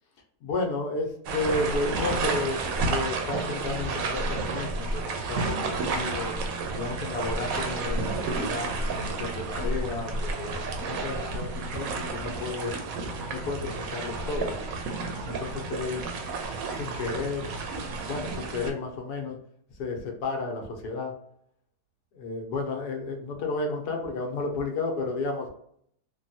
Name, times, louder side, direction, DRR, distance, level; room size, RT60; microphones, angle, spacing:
voice 1, 0.4-2.6 2.9-6.4 6.7-8.7 9.2-12.8 13.3-14.6 15.2-16.1 16.7-17.5 18.0-19.4 19.8-21.1 22.1-25.5, left 3 dB, 90° left, 3 dB, 1.3 m, -32 dB
sound 1, 1.3-18.7, right 3 dB, 70° right, 0.9 m, -31 dB
3.4 x 2.2 x 2.6 m, 0.67 s
omnidirectional pair, 1.7 m